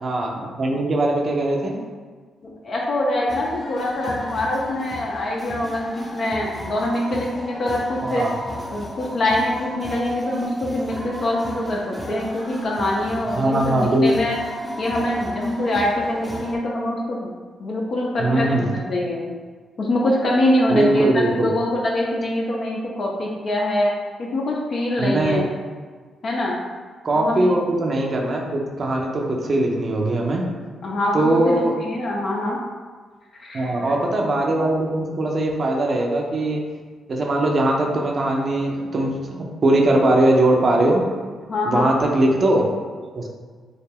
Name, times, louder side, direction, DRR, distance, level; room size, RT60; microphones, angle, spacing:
voice 1, 0.0-1.8 8.1-8.3 13.4-14.1 18.2-18.7 20.7-21.5 25.0-25.4 27.0-30.4 31.1-31.7 33.5-36.6 37.1-41.0 41.7-42.7 43.1-43.3, right 1 dB, 50° right, 0 dB, 0.5 m, -20 dB
voice 2, 2.4-8.3 8.7-14.3 14.8-17.3 17.6-19.3 19.8-23.9 24.2-25.5 26.2-26.6 27.2-27.5 30.8-31.2 31.5-32.6 33.3-33.7 41.5-41.9, left 1 dB, 55° left, -3 dB, 0.4 m, -24 dB
sound 1, 3.3-16.6, equal, 10° left, 0.6 m, -34 dB
2.3 x 2.1 x 3.3 m, 1.5 s
hypercardioid pair, 45°, 0 cm